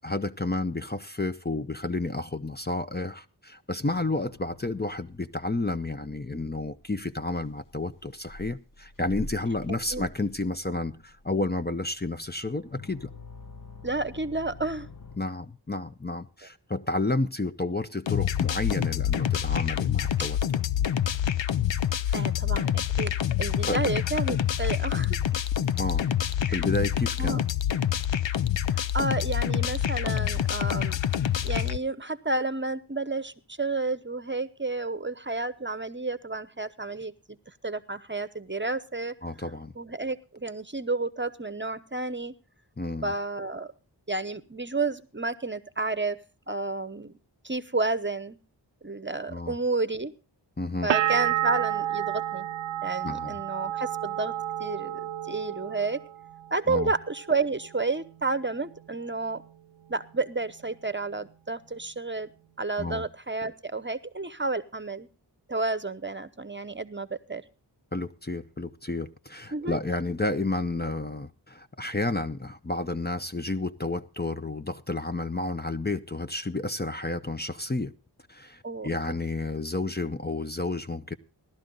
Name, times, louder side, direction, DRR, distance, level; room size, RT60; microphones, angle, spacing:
voice 1, 0.0-13.1 15.2-20.6 22.0-22.3 23.7-23.8 25.7-26.1 26.5-27.5 39.2-39.7 42.8-43.1 49.3-49.6 50.6-50.9 53.0-53.4 56.7-56.9 62.8-63.0 67.9-77.9 78.3-81.2, left 2 dB, 20° left, 9 dB, 0.7 m, -31 dB
sound 1, 3.8-15.2, left 2 dB, 45° left, 1.2 m, -46 dB
voice 2, 9.7-10.1 13.8-14.9 22.1-25.2 27.2-27.4 28.7-31.0 31.4-37.4 37.6-39.1 39.8-42.3 43.0-43.7 44.1-46.2 46.5-47.2 47.4-48.4 48.8-50.1 50.8-52.5 52.8-54.3 54.6-56.0 56.5-59.4 59.9-62.3 62.6-65.1 65.5-67.4 69.5-69.8 78.6-79.2, right 3 dB, 25° right, 15 dB, 0.9 m, -31 dB
sound 2, 18.1-31.8, left 10 dB, 80° left, 0.6 m, -26 dB
sound 3, 50.9-56.5 56.8-57.6, right 12 dB, 90° right, 0.6 m, -30 dB
17.0 x 12.0 x 3.9 m, 0.33 s
wide cardioid pair, 45°, 44 cm